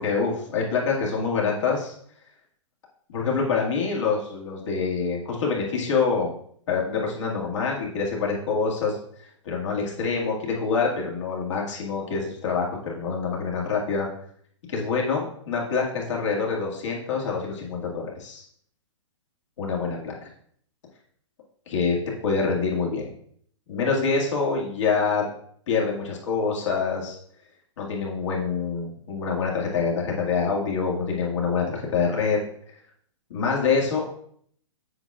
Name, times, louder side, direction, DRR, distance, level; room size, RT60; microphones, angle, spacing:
voice 1, 0.0-1.9 3.1-6.3 6.7-14.1 14.7-18.4 19.6-20.3 21.7-23.0 23.7-25.3 25.7-27.2 27.8-32.4 33.3-34.1, left 5 dB, 65° left, -2 dB, 2.0 m, -26 dB
7.7 x 6.0 x 2.4 m, 0.64 s
hypercardioid pair, 135°, 16 cm